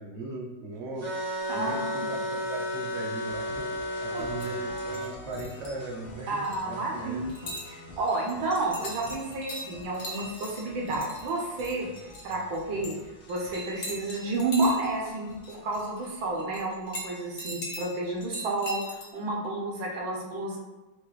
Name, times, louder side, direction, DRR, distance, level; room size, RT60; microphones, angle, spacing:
voice 1, 0.0-7.2 7.8-8.0, right 2 dB, 55° right, -1 dB, 0.7 m, -39 dB
sound 1, 1.0-5.1, equal, 20° right, 0.4 m, -33 dB
voice 2, 1.5-2.1 4.1-4.2 6.3-7.3 7.7-12.9 13.3-20.6, right 2 dB, 80° right, -1 dB, 1.6 m, -31 dB
sound 2, 3.2-16.4, left 3 dB, 70° left, 1.4 m, -48 dB
sound 3, 4.2-5.8 6.2-6.6 7.3-7.7 8.1-13.0 13.3-16.1 16.3-19.1, left 1 dB, 50° left, 1.1 m, -41 dB
6.3 x 2.5 x 3.1 m, 1.2 s
omnidirectional pair, 2.2 m